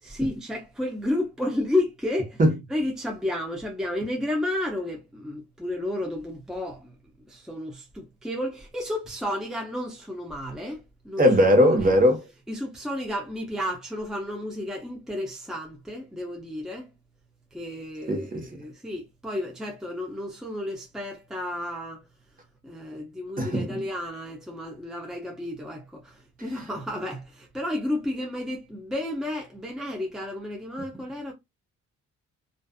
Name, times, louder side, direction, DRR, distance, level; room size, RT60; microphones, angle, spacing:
voice 1, 0.0-2.4 2.7-6.9 7.3-11.2 11.8-11.9 12.5-16.9 17.5-22.0 22.6-31.3, left 1 dB, ahead, 0.6 m, -32 dB
voice 2, 11.2-12.3 18.1-18.5 23.4-23.7, equal, 30° right, 1.0 m, -19 dB
2.5 x 2.3 x 2.3 m
cardioid pair, 90°, 30 cm